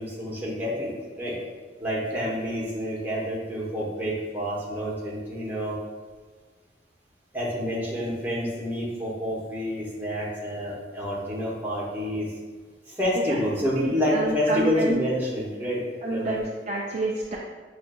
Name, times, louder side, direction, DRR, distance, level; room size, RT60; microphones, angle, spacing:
voice 1, 0.0-1.3 1.8-5.7 7.3-12.3 12.9-16.4, equal, 10° right, -6 dB, 0.9 m, -28 dB
voice 2, 13.7-15.0 16.0-17.4, right 2 dB, 40° right, -3 dB, 0.4 m, -29 dB
6.0 x 2.5 x 2.2 m, 1.4 s
head